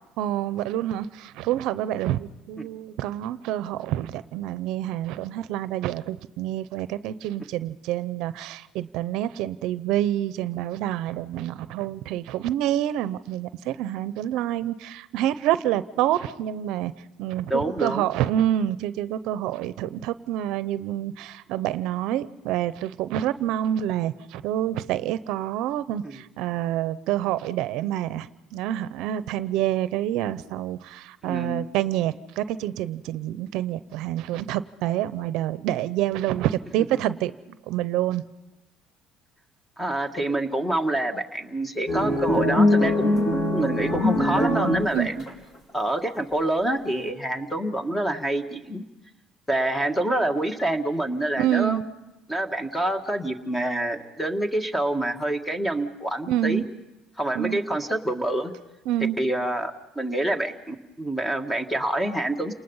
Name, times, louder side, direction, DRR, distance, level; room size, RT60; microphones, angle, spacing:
voice 1, 0.2-16.9 17.2-37.3 37.7-38.2 44.9-45.1 51.4-51.8 56.3-56.6 57.3-57.6 58.9-59.2, right 12 dB, 75° right, 15 dB, 0.7 m, -27 dB
voice 2, 17.5-18.1 26.0-26.2 31.2-31.7 39.8-45.2 45.7-48.8 49.5-51.8 52.3-56.6 57.2-58.5 59.2-62.5, right 1 dB, 10° left, 7 dB, 1.8 m, -27 dB
sound 1, 41.9-45.3, left 1 dB, 30° left, 3.9 m, -22 dB
30.0 x 20.0 x 5.6 m, 0.97 s
cardioid pair, 115°, 0 cm